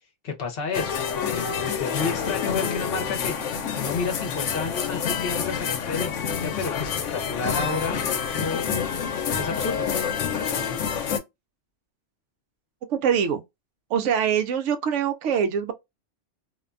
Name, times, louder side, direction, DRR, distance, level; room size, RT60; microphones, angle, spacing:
voice 1, 0.2-8.0 8.3-8.7 9.4-9.9, left 5 dB, 55° left, 0.9 m, -31 dB
sound 1, 0.7-11.2, left 7 dB, 90° left, 1.0 m, -28 dB
voice 2, 12.9-13.4 13.9-15.7, right 8 dB, 80° right, 0.9 m, -23 dB
2.6 x 2.2 x 2.4 m
omnidirectional pair, 1.2 m